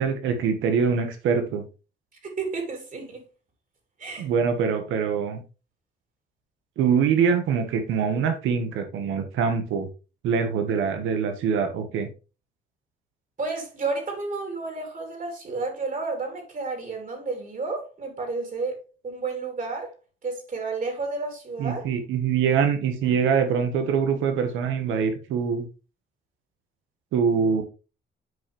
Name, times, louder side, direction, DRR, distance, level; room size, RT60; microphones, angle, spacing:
voice 1, 0.0-1.6 4.2-5.4 6.8-9.9 10.2-12.1 21.6-25.6 27.1-27.6, right 6 dB, 90° right, 1.4 m, -24 dB
voice 2, 2.2-3.2 4.0-4.3 13.4-18.8 19.0-19.9 20.2-21.9, right 3 dB, 45° right, 3.0 m, -31 dB
8.3 x 4.9 x 3.3 m
cardioid pair, 90°, 20 cm